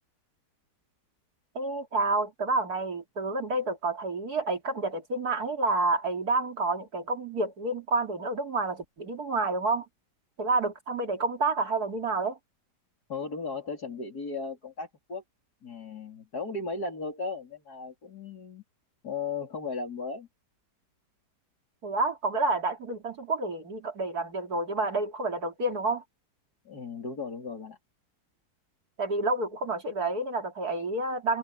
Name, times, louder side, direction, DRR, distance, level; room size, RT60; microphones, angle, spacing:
voice 1, 1.5-9.9 10.4-12.4 21.8-26.0 29.0-31.4, right 3 dB, 60° right, 3.1 m, -29 dB
voice 2, 13.1-15.2 15.6-18.6 19.0-20.3 26.7-27.8, left 4 dB, 65° left, 4.1 m, -36 dB
omnidirectional pair, 1.8 m